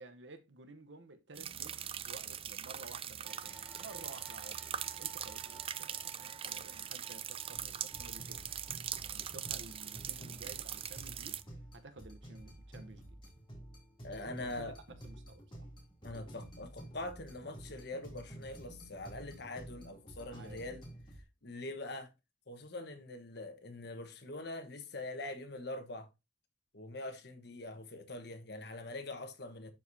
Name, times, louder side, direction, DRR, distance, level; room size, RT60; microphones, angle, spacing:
voice 1, 0.0-8.5 9.0-11.5 11.7-13.2 14.4-15.4 20.3-20.8, right 3 dB, 75° right, 1.0 m, -53 dB
sound 1, 1.4-11.4, right 9 dB, 30° right, 0.4 m, -42 dB
sound 2, 3.2-11.9 12.5-12.6 13.7-13.8, right 5 dB, 5° right, 1.1 m, -58 dB
sound 3, 7.5-21.2, right 1 dB, 30° left, 2.9 m, -51 dB
voice 2, 14.0-14.8 16.0-20.8 21.4-22.1 22.5-26.1 26.7-29.7, left 2 dB, 65° left, 1.3 m, -43 dB
11.5 x 4.8 x 2.8 m
head